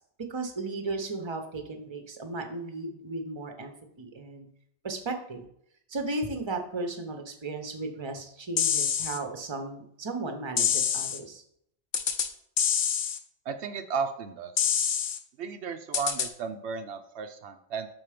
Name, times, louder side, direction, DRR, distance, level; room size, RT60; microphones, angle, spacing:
voice 1, 0.3-4.5 4.8-5.4 5.9-11.4, right 3 dB, 25° right, 5 dB, 0.9 m, -35 dB
sound 1, 8.6-9.2 10.6-11.2 11.9-12.3 12.6-13.2 14.6-15.2 15.9-16.3, left 8 dB, 55° left, 0.7 m, -26 dB
voice 2, 13.5-14.5 15.4-17.9, right 6 dB, 75° right, 7 dB, 0.9 m, -34 dB
6.2 x 4.4 x 5.0 m, 0.70 s
omnidirectional pair, 1.2 m